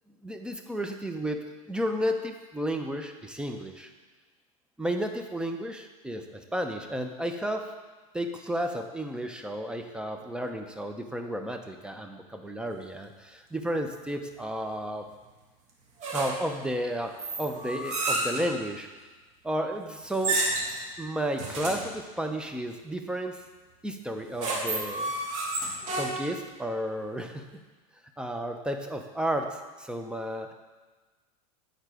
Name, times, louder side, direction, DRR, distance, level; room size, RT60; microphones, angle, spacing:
voice 1, 0.2-3.9 4.8-7.7 8.1-15.0 16.1-18.9 19.4-20.4 21.0-23.4 23.8-25.1 26.0-27.5 28.2-30.5, equal, 5° right, 5 dB, 0.6 m, -32 dB
sound 1, 16.0-16.6 17.2-18.5 20.1-20.8 21.4-21.9 24.1-26.4, right 2 dB, 40° right, 1.5 m, -30 dB
8.8 x 4.0 x 4.9 m, 1.3 s
supercardioid pair, 115°, 19 cm